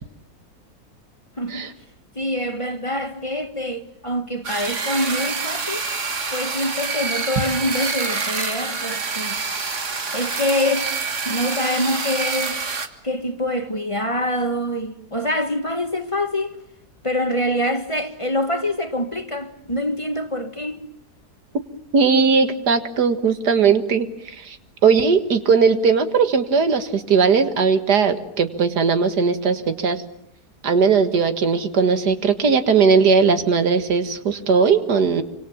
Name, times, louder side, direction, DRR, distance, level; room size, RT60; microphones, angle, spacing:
voice 1, 2.1-5.9 6.3-9.4 10.1-10.9 11.2-12.6 13.0-16.6 17.0-20.8, left 1 dB, 20° left, 1.5 m, -25 dB
sound 1, 4.4-12.9, right 4 dB, 50° right, 2.0 m, -27 dB
voice 2, 21.9-24.6 24.8-30.0 30.6-35.2, right 5 dB, 85° right, 2.2 m, -18 dB
27.5 x 25.5 x 7.2 m
omnidirectional pair, 1.7 m